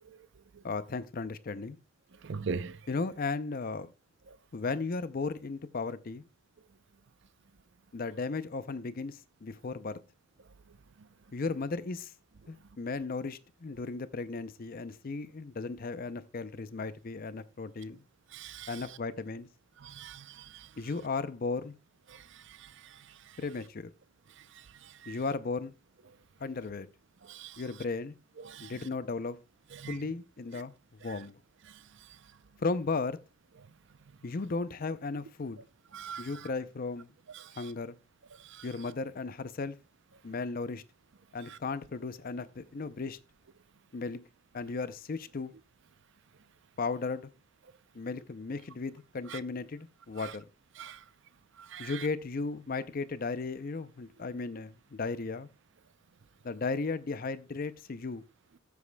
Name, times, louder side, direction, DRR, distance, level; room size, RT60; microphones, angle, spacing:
voice 1, 0.6-1.8 2.9-3.9 4.5-6.3 7.9-10.0 11.3-12.1 12.5-18.0 18.7-19.5 20.8-21.8 23.4-23.9 25.1-25.7 26.4-26.9 27.6-28.1 28.6-29.4 29.9-30.7 31.0-31.4 32.6-33.2 34.2-35.6 36.2-37.1 37.6-37.9 38.6-39.8 40.2-40.8 41.3-43.2 43.9-44.2 44.5-45.5 46.8-47.3 47.9-50.5 51.8-55.5 56.4-58.2, left 4 dB, 45° left, 0.5 m, -35 dB
voice 2, 2.2-2.7 18.3-18.7 19.8-20.2 25.0-25.1 27.3-27.6 28.4-28.7 29.8-30.0 35.9-36.3 38.6-38.7 49.3-49.4 50.8-51.0 51.7-51.9, right 5 dB, 60° right, 0.5 m, -39 dB
14.5 x 8.3 x 2.2 m
head